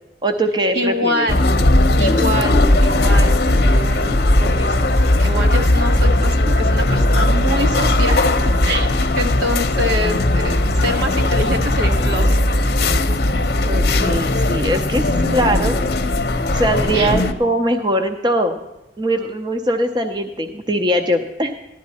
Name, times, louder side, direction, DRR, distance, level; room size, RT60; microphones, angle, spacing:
voice 1, 0.2-1.3 13.7-15.0 15.3-15.8 16.5-18.6 19.0-21.6, right 1 dB, 25° right, 6 dB, 0.6 m, -21 dB
voice 2, 0.7-1.5 2.0-8.3 8.6-8.9 9.2-12.4 14.9-15.7 16.9-17.1, equal, 75° right, 4 dB, 1.4 m, -25 dB
sound 1, 1.3-17.3, left 1 dB, 60° left, 0.8 m, -17 dB
14.5 x 11.5 x 4.2 m, 0.95 s
head